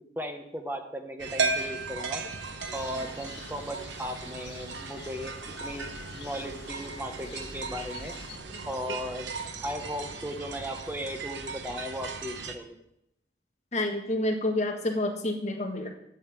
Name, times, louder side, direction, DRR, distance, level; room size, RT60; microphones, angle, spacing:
voice 1, 0.2-2.2 2.7-8.1 8.7-9.3 9.6-12.8, equal, 10° right, 5 dB, 1.0 m, -37 dB
sound 1, 1.2-12.6, right 4 dB, 75° right, 1.0 m, -36 dB
sound 2, 2.6-8.4, left 3 dB, 70° left, 2.1 m, -46 dB
voice 2, 8.5-9.0 13.7-15.9, left 1 dB, 35° left, 2 dB, 1.6 m, -29 dB
11.0 x 5.6 x 8.4 m, 0.80 s
head